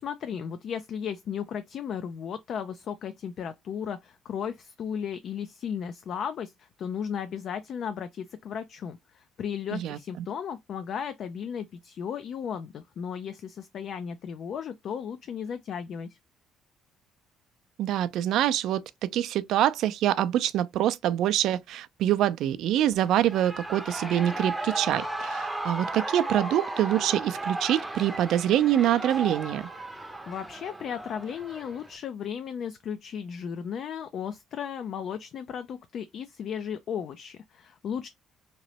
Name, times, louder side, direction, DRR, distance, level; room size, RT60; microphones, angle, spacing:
voice 1, 0.0-16.2 30.3-38.1, left 7 dB, 55° left, 0.3 m, -35 dB
voice 2, 9.7-10.3 17.8-29.7, right 12 dB, 75° right, 0.4 m, -25 dB
Shout / Cheering, 23.0-32.0, right 2 dB, 10° right, 0.6 m, -35 dB
3.0 x 2.9 x 2.8 m
cardioid pair, 105°, 0 cm